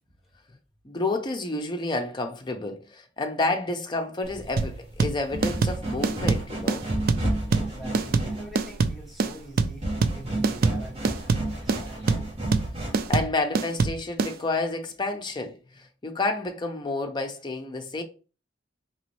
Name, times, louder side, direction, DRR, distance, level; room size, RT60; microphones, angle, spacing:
voice 1, 0.8-6.9 13.1-18.0, left 2 dB, 25° left, 0.6 m, -30 dB
sound 1, 4.2-13.2, right 1 dB, 35° right, 1.4 m, -32 dB
sound 2, 4.6-14.3, right 4 dB, 50° right, 0.4 m, -24 dB
voice 2, 7.5-12.3, right 1 dB, ahead, 1.2 m, -45 dB
4.0 x 3.0 x 3.0 m
head